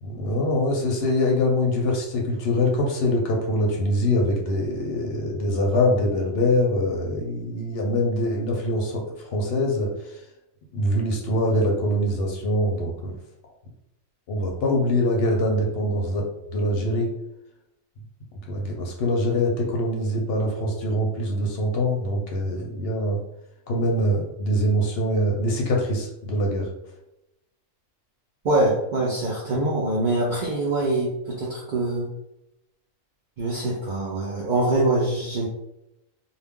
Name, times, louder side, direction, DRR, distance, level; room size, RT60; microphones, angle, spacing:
voice 1, 0.0-10.2 10.7-13.2 14.3-17.1 18.5-23.2 23.7-26.7, left 1 dB, 60° left, 0 dB, 0.7 m, -24 dB
voice 2, 28.4-32.1 33.4-35.5, right 2 dB, 70° right, -5 dB, 0.4 m, -24 dB
2.3 x 2.1 x 3.5 m, 0.87 s
omnidirectional pair, 1.4 m